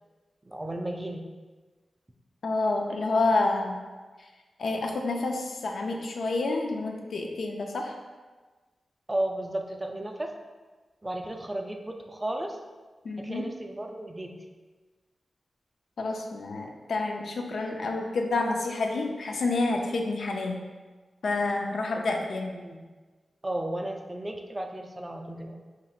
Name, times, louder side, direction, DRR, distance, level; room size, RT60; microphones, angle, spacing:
voice 1, 0.4-1.2 9.1-10.3 11.0-12.6 13.2-14.3 21.9-22.1 22.5-22.9 23.4-25.6, right 1 dB, 20° right, 3 dB, 0.4 m, -34 dB
voice 2, 2.4-3.8 4.6-7.9 13.0-13.4 16.0-20.6 21.2-22.5, left 3 dB, 80° left, 2 dB, 0.4 m, -28 dB
5.5 x 2.9 x 2.4 m, 1.3 s
wide cardioid pair, 110°, 0 cm